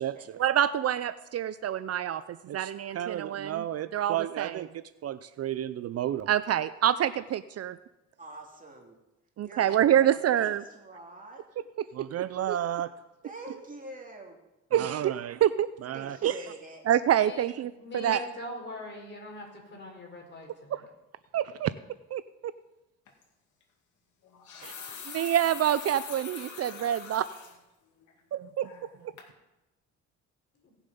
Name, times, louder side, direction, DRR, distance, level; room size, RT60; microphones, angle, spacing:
voice 1, 0.0-4.7 5.0-7.8 9.4-10.6 11.9-12.9 14.7-16.4 16.9-18.2 21.3-21.7 22.1-22.2 24.6-24.7 25.1-27.2 28.3-28.7, right 11 dB, 55° right, 14 dB, 0.5 m, -27 dB
voice 2, 8.2-9.0 9.4-11.4 13.2-14.4 15.9-16.8, right 2 dB, 25° right, 1 dB, 2.7 m, -45 dB
voice 3, 17.7-20.8 30.6-30.7, left 1 dB, 35° left, 1 dB, 4.6 m, -42 dB
sound 1, 23.1-23.2 24.2-27.5 28.0-28.1 28.6-28.9 29.2-29.3, left 6 dB, 75° left, 2.5 m, -43 dB
18.0 x 7.0 x 5.4 m, 0.97 s
cardioid pair, 90°, 30 cm